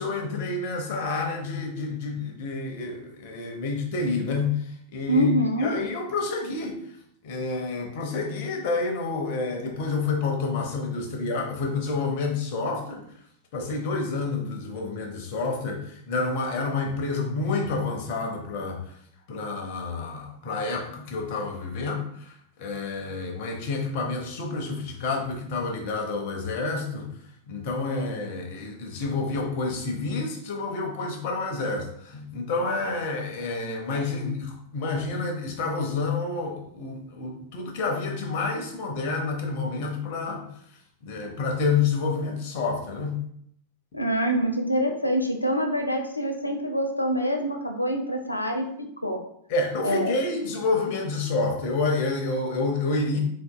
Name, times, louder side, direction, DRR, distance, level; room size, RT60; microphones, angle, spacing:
voice 1, 0.0-6.8 7.2-13.0 13.5-19.0 19.3-27.1 27.5-40.4 41.0-43.2 49.5-53.2, left 3 dB, 50° left, 2 dB, 0.8 m, -29 dB
voice 2, 5.1-5.7 43.9-49.2 49.8-50.1, equal, 85° left, 4 dB, 0.5 m, -25 dB
4.0 x 3.4 x 2.2 m, 0.67 s
figure-of-eight pair, 90°, 0 cm